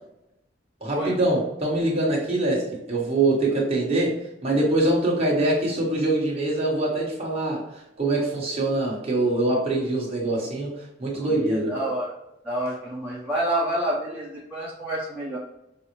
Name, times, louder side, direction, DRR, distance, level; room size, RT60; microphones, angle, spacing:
voice 1, 0.8-10.7 11.0-11.7, right 2 dB, 35° right, -5 dB, 1.2 m, -24 dB
voice 2, 11.1-12.1 12.4-15.4, right 1 dB, 10° right, -8 dB, 0.7 m, -28 dB
5.5 x 2.0 x 3.0 m, 0.87 s
head